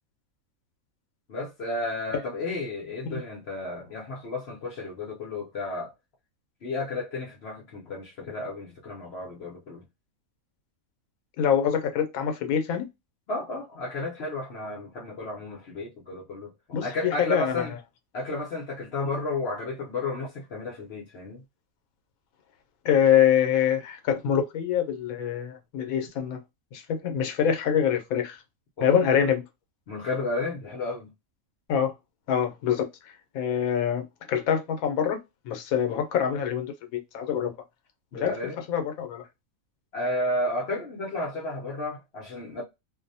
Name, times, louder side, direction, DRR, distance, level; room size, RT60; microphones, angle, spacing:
voice 1, 1.3-5.9 6.6-9.8 13.3-16.5 16.8-17.7 18.1-21.4 28.8-28.9 29.9-31.1 38.1-38.6 39.9-42.6, left 2 dB, 55° left, 0.8 m, -32 dB
voice 2, 11.4-12.8 16.7-17.6 22.8-26.4 26.7-28.4 28.8-29.4 31.7-31.9 32.3-32.9 33.3-35.2 35.5-37.5 38.1-38.4 38.7-39.2, left 8 dB, 80° left, 1.1 m, -25 dB
2.6 x 2.1 x 2.6 m
omnidirectional pair, 1.5 m